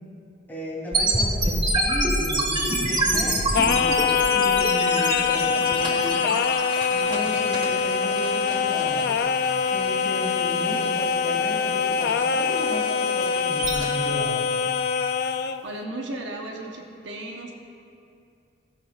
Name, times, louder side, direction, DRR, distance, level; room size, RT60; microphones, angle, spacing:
voice 1, 0.5-2.6 2.9-6.1 6.9-9.3 9.7-14.5, equal, 10° left, -6 dB, 3.1 m, -34 dB
sound 1, 0.9-13.9, right 1 dB, 25° right, 1.5 m, -28 dB
Singing, 3.5-15.6, left 6 dB, 55° left, 0.4 m, -24 dB
voice 2, 5.9-6.4 15.6-17.5, right 1 dB, 70° right, 1 dB, 1.0 m, -36 dB
15.5 x 15.5 x 2.4 m, 2.5 s
head